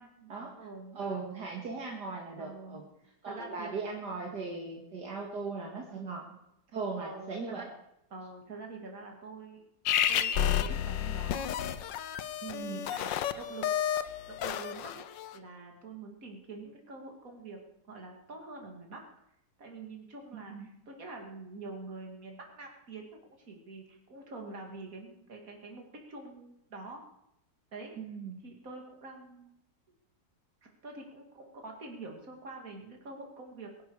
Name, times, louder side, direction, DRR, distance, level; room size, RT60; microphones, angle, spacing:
voice 1, 0.0-1.2 2.4-2.8 3.2-3.7 5.9-6.4 6.7-7.7 8.1-9.6 10.1-11.5 12.4-13.7 14.3-15.1 15.3-17.6 17.9-19.1 19.6-27.0 27.7-27.9 28.4-29.5 30.6-33.8, right 3 dB, 50° right, 2 dB, 2.9 m, -46 dB
voice 2, 0.9-2.8 3.2-6.3 6.7-7.6 12.4-12.9 20.3-20.7 28.0-28.4, right 4 dB, 65° right, -1 dB, 2.4 m, -38 dB
sound 1, 9.9-15.3, left 10 dB, 80° left, 1.5 m, -31 dB
23.0 x 11.0 x 4.8 m, 0.81 s
omnidirectional pair, 2.0 m